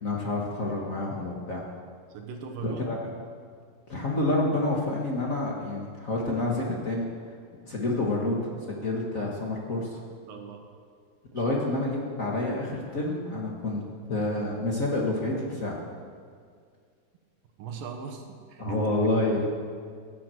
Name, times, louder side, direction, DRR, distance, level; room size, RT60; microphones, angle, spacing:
voice 1, 0.0-1.6 2.6-3.0 3.9-7.1 7.6-8.4 8.7-10.0 11.3-13.8 14.1-15.8 18.6-19.5, left 2 dB, 45° left, -2 dB, 1.0 m, -28 dB
voice 2, 2.1-2.9 10.3-10.7 11.3-11.5 17.6-19.0, right 6 dB, 85° right, 3 dB, 3.0 m, -39 dB
17.0 x 7.8 x 7.7 m, 2.1 s
omnidirectional pair, 3.9 m